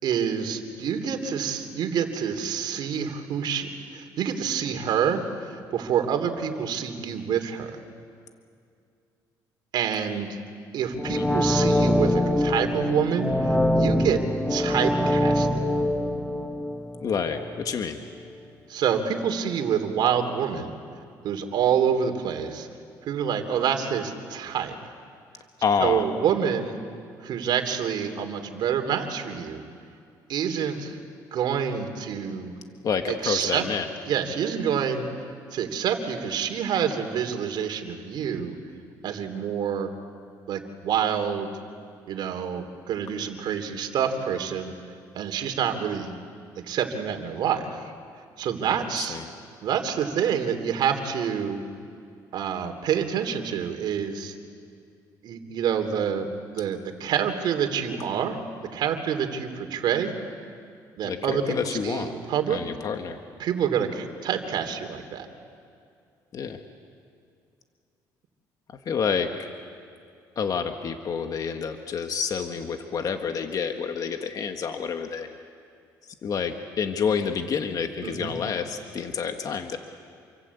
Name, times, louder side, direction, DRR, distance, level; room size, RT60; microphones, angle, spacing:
voice 1, 0.0-7.7 9.7-10.4 10.7-14.2 14.5-15.5 18.7-20.7 21.2-22.7 23.0-24.8 25.8-26.8 27.2-29.6 30.3-31.0 31.3-32.5 33.1-33.7 34.0-35.1 35.5-38.6 39.0-39.9 40.5-41.5 42.1-44.7 45.1-46.1 46.6-47.9 48.4-49.2 49.6-51.6 52.3-54.3 55.2-60.1 61.0-62.6 63.4-65.3 78.0-78.4, right 8 dB, 65° right, 5 dB, 3.1 m, -27 dB
sound 1, 11.0-17.8 18.1-18.2, left 1 dB, 10° left, 1.5 m, -24 dB
voice 2, 17.0-18.0 25.6-26.0 32.8-33.9 49.0-49.2 61.0-62.1 62.5-63.2 66.3-66.6 68.9-69.5 70.4-75.4 76.2-79.8, left 6 dB, 50° left, 6 dB, 1.8 m, -28 dB
28.5 x 24.0 x 8.4 m, 2.4 s
cardioid pair, 95°, 8 cm